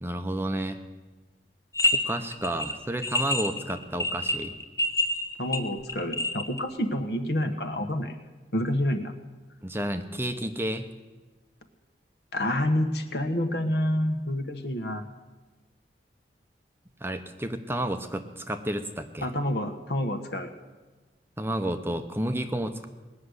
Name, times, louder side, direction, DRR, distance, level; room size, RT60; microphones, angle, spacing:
voice 1, 0.0-0.8 1.9-4.6 9.6-10.9 17.0-19.3 21.4-22.9, right 1 dB, 15° right, 8 dB, 0.8 m, -31 dB
sound 1, 1.7-2.0 2.2-6.6, left 1 dB, 20° left, 1.2 m, -27 dB
voice 2, 5.4-8.2 8.5-9.1 12.3-15.0 19.2-20.5, left 1 dB, 65° left, 7 dB, 1.4 m, -28 dB
19.5 x 6.6 x 9.6 m, 1.2 s
head